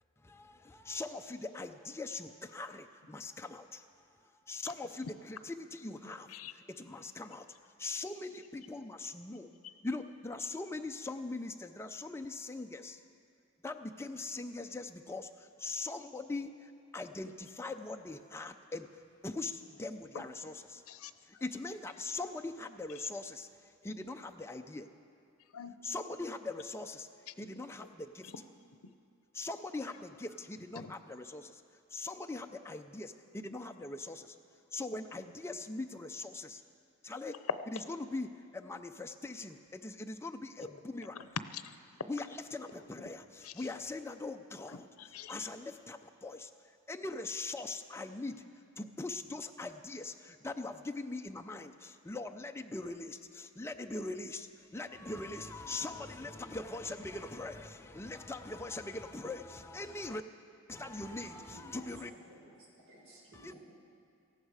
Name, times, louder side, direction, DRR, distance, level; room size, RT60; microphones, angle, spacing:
voice 1, 0.2-6.3 6.7-7.5 7.8-9.5 9.8-13.0 13.6-20.8 21.2-24.9 25.8-27.1 27.4-28.3 29.3-31.6 31.9-34.4 34.7-36.6 37.0-37.4 38.0-41.3 42.1-42.3 42.5-44.9 45.3-48.4 48.8-60.2 60.7-62.1 63.3-63.5, left 2 dB, 10° left, 5 dB, 0.5 m, -41 dB
voice 2, 20.9-21.4 25.4-25.7 27.3-27.4 28.2-28.3 28.8-28.9 30.7-30.9 33.4-33.5 40.6-40.7 41.2-41.7 43.4-43.7 44.7-45.5, left 6 dB, 90° left, 11 dB, 0.6 m, -45 dB
voice 3, 61.5-61.8 62.3-63.6, right 1 dB, 65° right, -4 dB, 4.6 m, -55 dB
17.5 x 14.5 x 4.8 m, 2.4 s
head